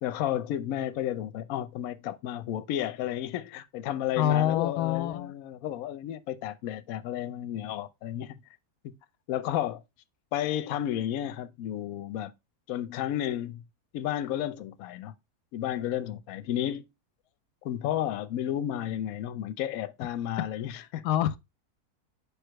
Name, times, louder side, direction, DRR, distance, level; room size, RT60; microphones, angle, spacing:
voice 1, 0.0-8.4 8.8-8.9 9.3-9.8 10.3-12.3 12.7-13.6 13.9-15.1 15.5-16.9 17.6-21.0, left 11 dB, 65° left, 1.0 m, -32 dB
voice 2, 4.2-5.3 20.7-21.4, left 11 dB, 90° left, 1.2 m, -26 dB
5.3 x 4.8 x 4.5 m
omnidirectional pair, 1.7 m